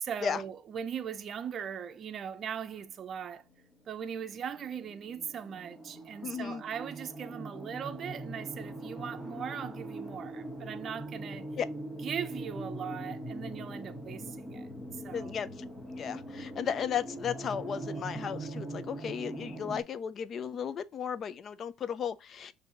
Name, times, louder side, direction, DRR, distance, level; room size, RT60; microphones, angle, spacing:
voice 1, 0.0-3.4 3.9-11.5 12.0-14.7 15.0-15.3, right 8 dB, 40° right, 0.5 m, -39 dB
sound 1, 2.9-19.8, right 1 dB, 5° left, 1.1 m, -42 dB
voice 2, 6.2-6.6 11.6-11.7 15.1-15.6 15.9-22.5, left 8 dB, 45° left, 0.4 m, -35 dB
6.0 x 2.7 x 2.6 m
cardioid pair, 115°, 0 cm